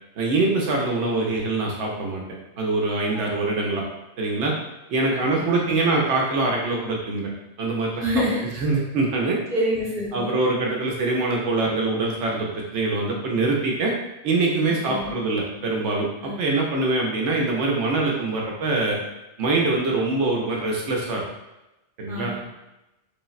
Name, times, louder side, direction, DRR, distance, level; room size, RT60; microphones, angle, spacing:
voice 1, 0.2-2.2 2.6-3.8 4.2-4.5 4.9-7.3 7.6-8.2 8.6-9.4 10.1-13.9 14.2-19.0 19.4-21.2 22.0-22.3, right 3 dB, 80° right, -1 dB, 0.9 m, -24 dB
voice 2, 5.1-5.8 8.0-8.4 9.5-10.3 14.8-15.2 16.2-16.4 22.1-22.5, equal, 5° right, -8 dB, 0.7 m, -27 dB
3.4 x 2.0 x 2.3 m, 0.96 s
omnidirectional pair, 1.2 m